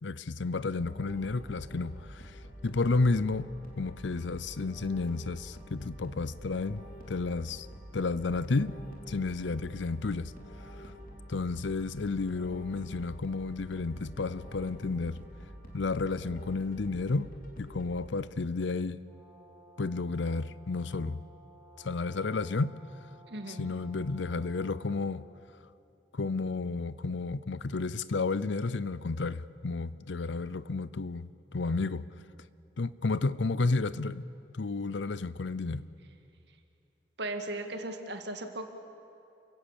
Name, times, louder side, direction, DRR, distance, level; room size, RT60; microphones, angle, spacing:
voice 1, 0.0-2.3 2.6-3.5 3.8-7.7 7.9-8.8 9.1-10.3 11.3-15.2 15.7-17.3 17.6-19.0 19.8-21.2 21.8-22.8 23.5-25.2 26.1-32.0 32.8-34.3 34.5-35.9, left 3 dB, 75° left, 0.6 m, -31 dB
sound 1, 0.8-17.9, equal, 45° left, 3.1 m, -47 dB
Brass instrument, 19.0-25.3, right 1 dB, 10° left, 7.9 m, -57 dB
voice 2, 23.3-23.7 37.2-38.7, right 2 dB, 65° right, 1.9 m, -37 dB
29.0 x 16.5 x 7.4 m
head